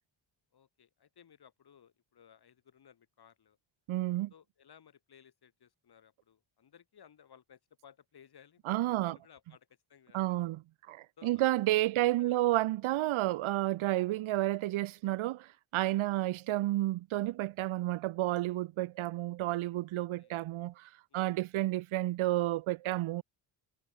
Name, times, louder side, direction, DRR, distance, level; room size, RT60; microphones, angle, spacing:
voice 1, 0.5-3.6 4.3-10.5 11.2-11.4 12.0-12.5 16.0-16.2 20.2-20.4 21.1-21.4, left 8 dB, 50° left, 5.6 m, -60 dB
voice 2, 3.9-4.3 8.7-9.1 10.1-10.6 10.9-23.2, right 16 dB, 80° right, 0.8 m, -31 dB
wide cardioid pair, 145°, 47 cm